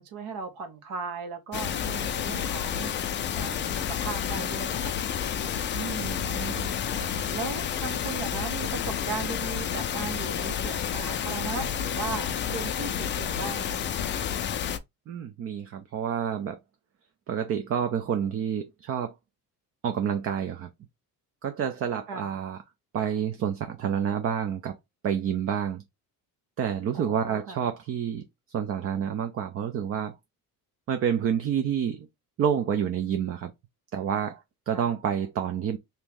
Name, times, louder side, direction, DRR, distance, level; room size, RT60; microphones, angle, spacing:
voice 1, 0.0-5.0 5.7-6.4 7.3-13.9 22.1-22.3 26.9-27.6 34.7-34.9, right 5 dB, 75° right, 1.4 m, -37 dB
sound 1, 1.5-14.8, left 8 dB, 35° left, 0.4 m, -30 dB
voice 2, 6.0-7.1 15.1-16.6 17.3-19.1 19.8-20.7 21.4-22.6 22.9-24.8 25.0-25.8 26.6-28.2 28.5-30.1 30.9-32.1 32.4-33.5 33.9-35.8, right 8 dB, 40° right, 0.5 m, -29 dB
3.0 x 2.8 x 3.5 m
cardioid pair, 160°, 36 cm